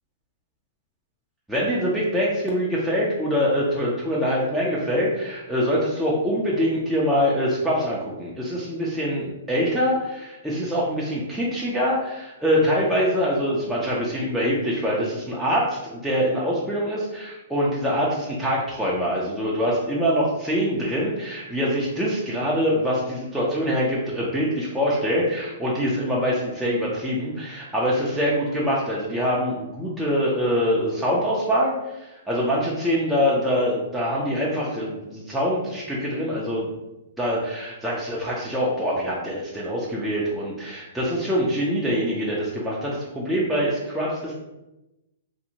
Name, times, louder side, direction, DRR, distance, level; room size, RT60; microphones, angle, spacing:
voice 1, 1.5-36.7 37.2-44.3, equal, 5° right, -7 dB, 0.4 m, -24 dB
2.6 x 2.0 x 2.8 m, 0.97 s
hypercardioid pair, 145°, 0 cm